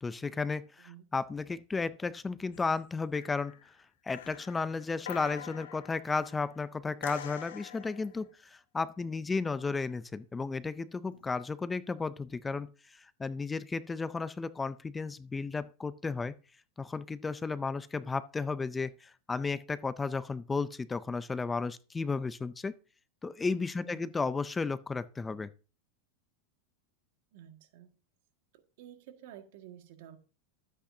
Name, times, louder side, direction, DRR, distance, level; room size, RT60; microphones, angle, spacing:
voice 1, 0.0-3.7 4.0-16.3 16.8-22.7 23.2-25.5, left 4 dB, 15° left, 0.4 m, -34 dB
voice 2, 0.8-1.1 23.8-24.1 27.3-28.0 28.8-30.2, right 11 dB, 65° right, 1.8 m, -51 dB
sound 1, 2.5-2.9 3.2-3.7 4.1-6.5 7.0-8.1 11.1-11.4, left 9 dB, 85° left, 0.9 m, -46 dB
13.0 x 8.4 x 2.7 m
supercardioid pair, 135°, 0 cm